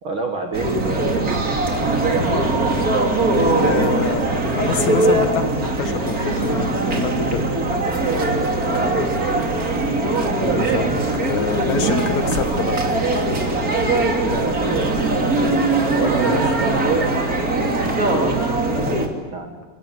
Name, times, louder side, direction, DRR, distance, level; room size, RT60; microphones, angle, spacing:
voice 1, 0.0-2.2 8.7-9.5 14.0-15.6 15.9-19.6, right 3 dB, 50° right, 4 dB, 1.5 m, -31 dB
sound 1, 0.5-19.1, right 2 dB, 25° right, 2.5 m, -20 dB
voice 2, 3.2-7.5 10.4-12.8 16.2-16.4 18.9-19.0, left 6 dB, 60° left, 8 dB, 2.0 m, -26 dB
25.5 x 19.0 x 9.5 m, 1.4 s
omnidirectional pair, 5.1 m